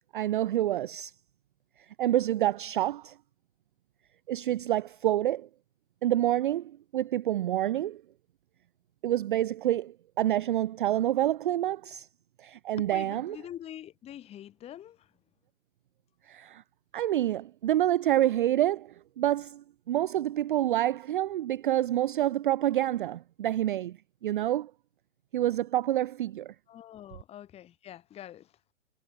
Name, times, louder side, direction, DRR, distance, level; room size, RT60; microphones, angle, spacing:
voice 1, 0.1-1.1 1.9-3.2 4.3-5.5 6.0-8.0 9.0-12.1 12.4-13.4 16.2-16.6 16.9-24.7 25.3-26.5, right 13 dB, 40° right, 0.6 m, -28 dB
voice 2, 12.8-15.1 26.7-28.6, left 11 dB, 15° left, 2.0 m, -45 dB
figure-of-eight pair, 125°, 39 cm